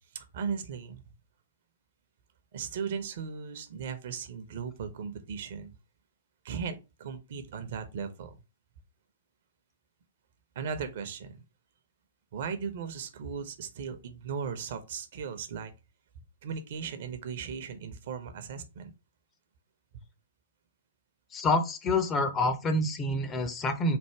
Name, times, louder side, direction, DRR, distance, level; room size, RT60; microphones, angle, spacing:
voice 1, 0.1-1.0 2.5-5.7 6.4-8.3 10.5-11.4 12.3-15.7 16.4-18.9, right 6 dB, 55° right, 0.8 m, -37 dB
voice 2, 21.3-24.0, left 2 dB, 20° left, 0.7 m, -27 dB
3.4 x 2.6 x 4.4 m
figure-of-eight pair, 115°, 0 cm